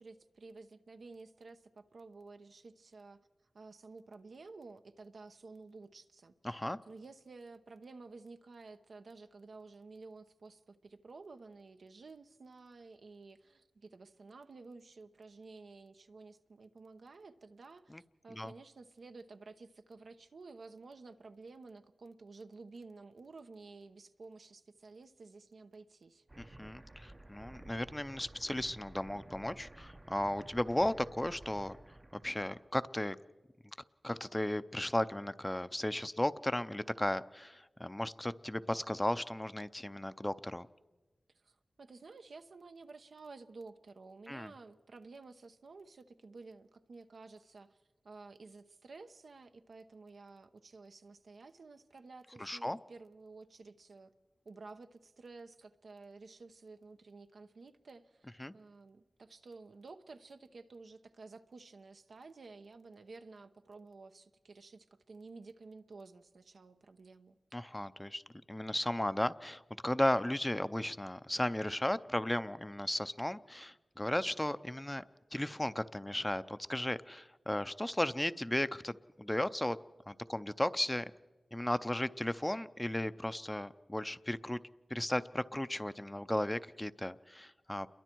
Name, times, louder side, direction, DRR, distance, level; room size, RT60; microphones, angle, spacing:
voice 1, 0.0-3.2 3.5-26.2 41.4-47.8 48.0-54.1 54.4-67.4, right 3 dB, 80° right, 0.9 m, -53 dB
voice 2, 6.4-6.8 17.9-18.0 18.3-18.5 26.4-31.8 32.2-33.2 34.0-40.7 44.3-44.5 52.4-52.8 58.4-58.5 67.5-68.2 68.5-75.0 75.3-79.8 80.1-81.1 81.5-84.6 84.9-87.9, left 1 dB, 15° left, 0.6 m, -35 dB
sound 1, 26.3-32.7, right 1 dB, 30° right, 0.7 m, -53 dB
29.0 x 22.5 x 4.6 m
wide cardioid pair, 70°, 0 cm